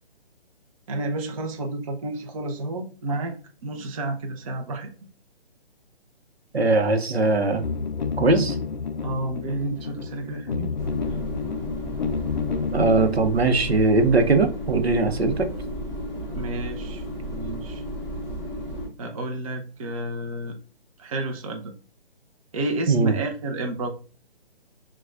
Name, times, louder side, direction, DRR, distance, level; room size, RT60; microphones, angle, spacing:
voice 1, 0.9-3.4 3.6-4.9 9.0-10.7 16.3-17.8 19.0-20.6 21.0-21.7 22.5-23.9, right 2 dB, 35° right, 4 dB, 0.6 m, -31 dB
voice 2, 6.5-7.6 8.2-8.6 12.7-15.5 22.9-23.1, right 3 dB, 90° right, 7 dB, 0.8 m, -20 dB
sound 1, 7.6-13.1, left 5 dB, 50° left, 0.5 m, -30 dB
sound 2, 10.8-18.9, equal, 10° left, 1.6 m, -33 dB
5.9 x 2.3 x 2.4 m, 0.39 s
figure-of-eight pair, 140°, 31 cm